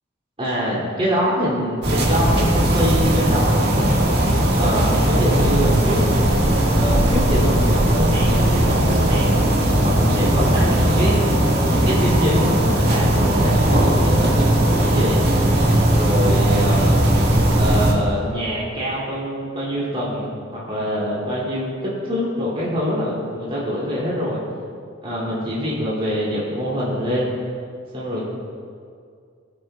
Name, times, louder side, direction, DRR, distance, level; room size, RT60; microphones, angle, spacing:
voice 1, 0.4-4.2 4.5-6.0 6.3-6.4 6.7-11.2 11.7-15.3 15.8-16.9 17.5-24.4 25.0-27.3 27.9-28.3, equal, 30° right, -7 dB, 2.5 m, -25 dB
sound 1, 1.8-17.9, right 1 dB, 55° right, 1.6 m, -18 dB
17.0 x 8.8 x 2.3 m, 2.3 s
head